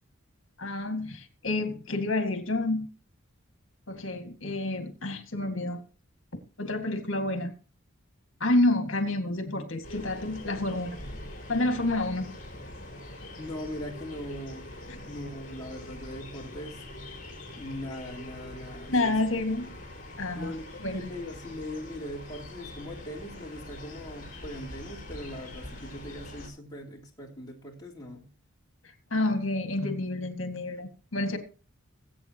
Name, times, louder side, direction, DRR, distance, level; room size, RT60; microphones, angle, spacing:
voice 1, 0.6-2.9 3.9-5.8 6.6-7.5 8.4-11.0 11.5-12.3 14.9-15.0 18.9-19.7 20.2-20.5 20.8-21.1 29.1-31.4, left 2 dB, 65° left, 2.1 m, -29 dB
sound 1, 9.8-26.5, left 1 dB, 40° left, 4.8 m, -44 dB
voice 2, 13.4-14.7 15.0-16.8 17.5-19.1 20.3-28.3, left 1 dB, 20° left, 3.0 m, -40 dB
21.5 x 8.5 x 3.0 m
head